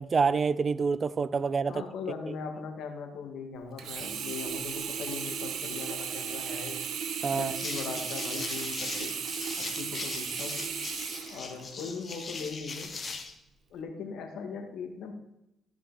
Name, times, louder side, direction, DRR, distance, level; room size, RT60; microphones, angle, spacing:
voice 1, 0.0-1.8 7.2-7.5, right 5 dB, 40° right, 0.4 m, -27 dB
voice 2, 1.7-6.8 7.3-9.1 9.6-10.6 11.3-12.9 13.7-15.1, left 5 dB, 80° left, 2.1 m, -39 dB
Sink (filling or washing), 3.8-12.0 12.6-12.7, right 7 dB, 70° right, 1.1 m, -36 dB
sound 1, 7.4-13.3, left 4 dB, 40° left, 1.7 m, -39 dB
14.0 x 5.9 x 4.1 m
cardioid pair, 90°, 0 cm